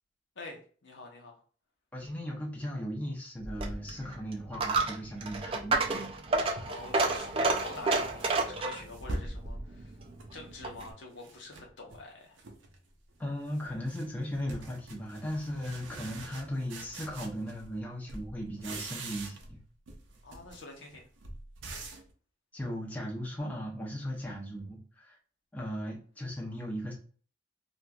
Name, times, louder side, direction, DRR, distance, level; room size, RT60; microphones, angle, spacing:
voice 1, 0.4-1.4 6.7-9.9 10.3-12.4 20.2-21.0, left 3 dB, 80° left, 1 dB, 0.8 m, -46 dB
voice 2, 1.9-6.0 13.2-19.6 22.5-25.2 25.5-26.9, equal, 10° left, -3 dB, 0.6 m, -37 dB
Coin (dropping), 3.4-10.9, right 3 dB, 30° right, 0.4 m, -31 dB
sound 1, 5.9-6.0 6.6-9.4 9.8-10.9 11.2-12.0 12.4-12.8 13.1-17.8 18.1-19.6 19.9-22.1, right 3 dB, 90° right, 0.6 m, -47 dB
3.0 x 2.5 x 2.3 m, 0.42 s
head